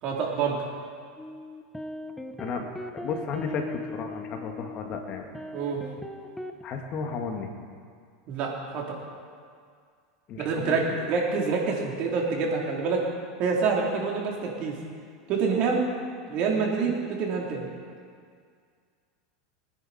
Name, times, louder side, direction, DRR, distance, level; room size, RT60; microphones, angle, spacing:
voice 1, 0.0-0.6 5.5-5.8 8.3-9.0 10.4-13.0 13.4-14.8 15.3-15.8 16.3-17.7, right 5 dB, 50° right, -2 dB, 3.5 m, -27 dB
sound 1, 1.2-6.6, left 2 dB, 5° left, 1.0 m, -39 dB
voice 2, 2.4-5.3 6.6-7.5 10.3-10.9, left 5 dB, 45° left, 3 dB, 1.9 m, -33 dB
23.5 x 10.0 x 4.3 m, 2.1 s
hypercardioid pair, 100°, 2 cm